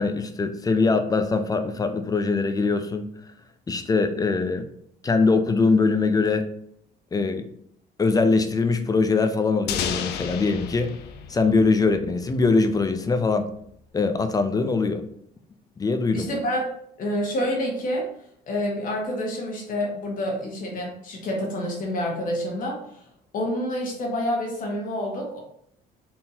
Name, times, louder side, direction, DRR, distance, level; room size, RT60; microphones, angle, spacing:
voice 1, 0.0-3.1 3.7-4.7 5.0-6.5 7.1-7.5 8.0-10.9 11.3-13.5 13.9-15.0 15.8-16.3, left 4 dB, 20° left, 8 dB, 0.5 m, -22 dB
sound 1, 9.7-12.5, left 8 dB, 75° left, 0.5 m, -32 dB
voice 2, 16.1-16.7 17.0-18.0 18.4-22.8 23.3-25.4, equal, 55° left, -1 dB, 1.5 m, -28 dB
4.3 x 3.7 x 2.8 m, 0.69 s
cardioid pair, 110°, 17 cm